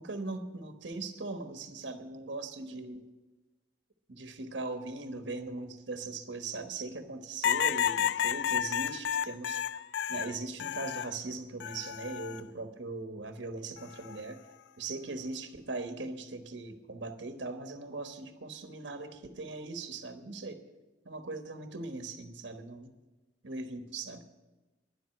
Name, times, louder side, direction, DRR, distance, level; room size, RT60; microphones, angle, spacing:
voice 1, 0.0-3.1 4.1-9.6 10.1-14.4 14.8-20.6 21.0-22.9 23.4-24.2, right 3 dB, 75° right, 7 dB, 1.2 m, -40 dB
sound 1, 7.4-11.1 11.6-12.4 13.8-14.2, left 9 dB, 65° left, 0.3 m, -31 dB
10.5 x 7.7 x 9.8 m, 1.1 s
head